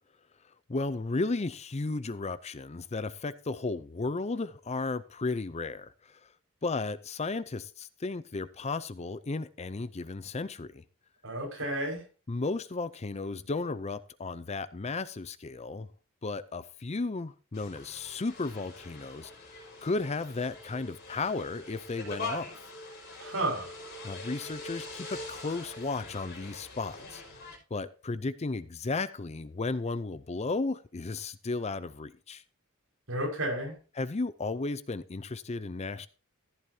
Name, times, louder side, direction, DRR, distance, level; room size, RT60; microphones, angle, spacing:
voice 1, 0.7-6.3 6.6-10.8 12.3-15.9 16.2-22.6 24.0-32.4 34.0-36.1, left 3 dB, 30° left, 0.5 m, -34 dB
voice 2, 11.2-12.0 23.2-23.7 33.1-33.8, right 1 dB, 65° right, 5.6 m, -32 dB
sound 1, 17.5-27.6, left 2 dB, 50° left, 5.8 m, -43 dB
14.5 x 11.0 x 2.8 m
head